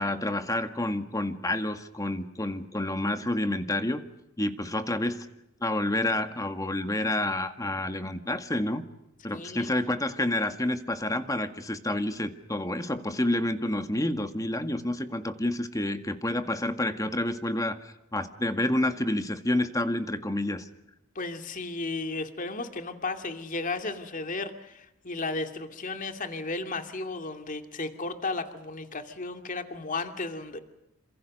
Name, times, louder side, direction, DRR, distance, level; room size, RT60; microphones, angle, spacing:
voice 1, 0.0-4.0 4.4-5.3 5.6-8.8 9.2-20.7, left 1 dB, 15° left, 8 dB, 1.8 m, -29 dB
voice 2, 9.3-9.7 21.1-30.6, left 3 dB, 40° left, 7 dB, 2.4 m, -34 dB
28.5 x 27.0 x 6.6 m, 0.87 s
head